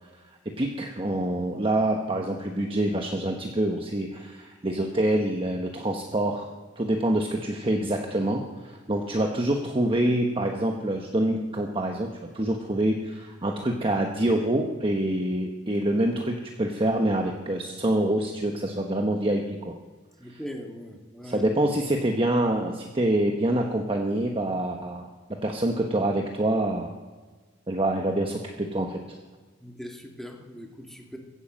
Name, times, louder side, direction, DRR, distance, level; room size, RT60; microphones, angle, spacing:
voice 1, 0.6-6.5 6.8-12.1 12.3-19.7 20.3-20.4 21.2-25.1 25.4-26.9 27.7-29.2, right 1 dB, 30° right, 2 dB, 1.2 m, -26 dB
voice 2, 20.2-21.4 29.6-31.2, equal, ahead, 2 dB, 2.0 m, -40 dB
16.5 x 9.6 x 7.5 m, 1.4 s
head